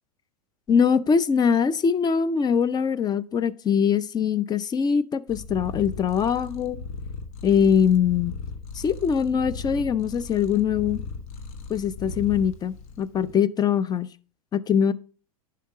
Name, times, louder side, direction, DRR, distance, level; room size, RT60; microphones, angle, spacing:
voice 1, 0.7-6.8 7.4-8.4 8.7-11.0 11.7-14.1 14.5-14.9, left 7 dB, 20° left, 0.5 m, -22 dB
Purr, 5.3-13.3, left 4 dB, 65° left, 1.3 m, -37 dB
10.0 x 5.5 x 3.8 m
hypercardioid pair, 100°, 19 cm